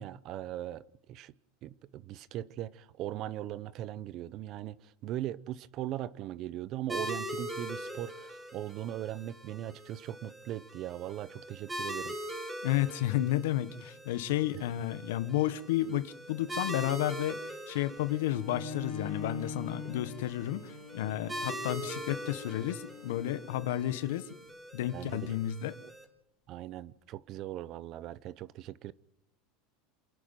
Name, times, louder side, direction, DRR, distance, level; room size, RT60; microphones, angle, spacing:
voice 1, 0.0-1.3 1.6-12.2 14.5-14.6 24.9-25.3 26.5-28.9, right 13 dB, 40° right, 0.7 m, -39 dB
sound 1, 6.9-26.0, right 1 dB, 10° right, 2.1 m, -42 dB
voice 2, 12.6-24.3 24.7-25.7, left 13 dB, 85° left, 1.2 m, -32 dB
Bowed string instrument, 18.3-24.0, left 5 dB, 55° left, 4.0 m, -43 dB
28.0 x 11.0 x 9.0 m
supercardioid pair, 155°, 0 cm